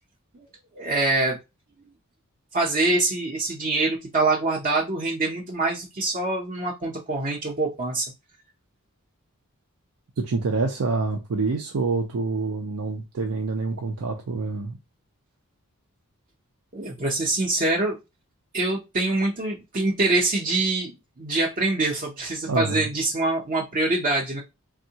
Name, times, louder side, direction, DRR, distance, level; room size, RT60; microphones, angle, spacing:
voice 1, 0.7-1.4 2.5-8.1 16.7-18.0 18.5-24.4, right 2 dB, 35° right, 0.6 m, -25 dB
voice 2, 10.2-14.8 22.5-22.9, right 3 dB, 80° right, 0.5 m, -27 dB
3.5 x 2.1 x 2.7 m
head